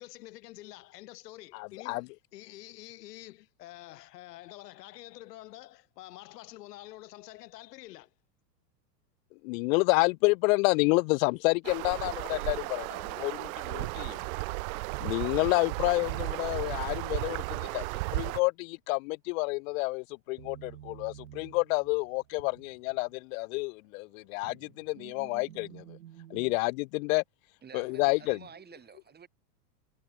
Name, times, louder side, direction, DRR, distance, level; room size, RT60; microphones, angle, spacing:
voice 1, 0.0-8.1, left 16 dB, 70° left, 6.4 m, -48 dB
voice 2, 1.5-2.0 9.4-14.2 15.0-17.9 18.1-26.0 26.3-27.2 27.7-28.4, left 26 dB, 55° left, 1.2 m, -29 dB
sound 1, 11.6-18.4, right 24 dB, 55° right, 1.1 m, -34 dB
sound 2, 16.3-17.0 20.4-23.5 23.9-26.6, right 12 dB, 90° right, 3.9 m, -51 dB
voice 3, 27.6-29.3, right 7 dB, 20° right, 6.2 m, -50 dB
supercardioid pair, 135°, 49 cm